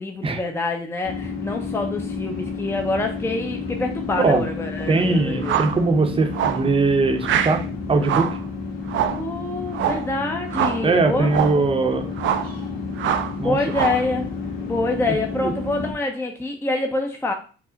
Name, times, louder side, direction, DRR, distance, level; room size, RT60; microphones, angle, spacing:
voice 1, 0.0-5.6 9.1-11.3 11.6-11.7 13.3-14.3 14.6-17.3, left 2 dB, 10° left, 3 dB, 0.6 m, -26 dB
sound 1, 1.0-15.9, left 4 dB, 50° left, 1.7 m, -31 dB
voice 2, 4.9-7.6 7.9-8.3 10.8-12.1 13.4-13.6 15.4-15.5, right 3 dB, 25° right, 5 dB, 0.7 m, -20 dB
sound 2, 5.4-5.8 6.3-6.7 7.2-7.6 8.0-8.4 8.9-9.3 9.7-10.1 10.5-10.9 11.3-11.6 12.2-12.5 13.0-13.3 13.7-14.1, right 9 dB, 75° right, 0.5 m, -24 dB
4.7 x 2.1 x 3.9 m, 0.38 s
cardioid pair, 90°, 20 cm